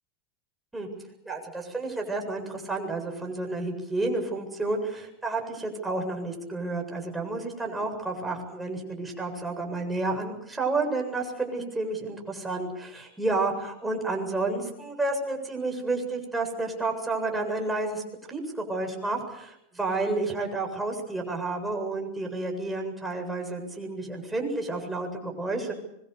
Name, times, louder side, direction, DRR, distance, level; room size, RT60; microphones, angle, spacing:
voice 1, 1.3-18.0 18.3-25.7, right 2 dB, 10° right, 2 dB, 7.8 m, -30 dB
25.0 x 24.0 x 6.9 m, 0.79 s
hypercardioid pair, 115°, 0 cm